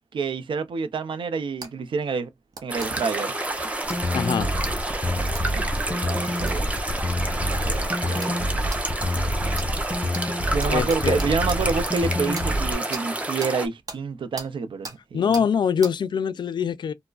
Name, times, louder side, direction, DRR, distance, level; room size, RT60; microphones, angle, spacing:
voice 1, 0.1-2.3 2.6-3.3 5.5-6.8 7.3-8.5 10.5-15.4, right 5 dB, 75° right, 0.5 m, -28 dB
sound 1, 1.6-1.7 2.5-2.9 3.9-4.0 5.3-5.4 6.5-6.6 7.3-7.4 8.2-8.4 8.7-8.8 9.5-9.7 10.1-10.2 10.6-11.6 12.3-12.5 12.9-13.0 13.4-13.5 13.9-14.0 14.4-14.5 14.8-15.0 15.3-15.5 15.8-15.9, right 3 dB, 45° right, 0.8 m, -37 dB
sound 2, 2.7-13.7, right 2 dB, 15° right, 0.6 m, -29 dB
sound 3, 3.8-12.7, left 1 dB, 10° left, 1.0 m, -27 dB
voice 2, 4.1-4.5 10.7-11.2 15.1-16.9, left 7 dB, 60° left, 0.3 m, -23 dB
4.6 x 2.1 x 2.4 m
wide cardioid pair, 150°, 9 cm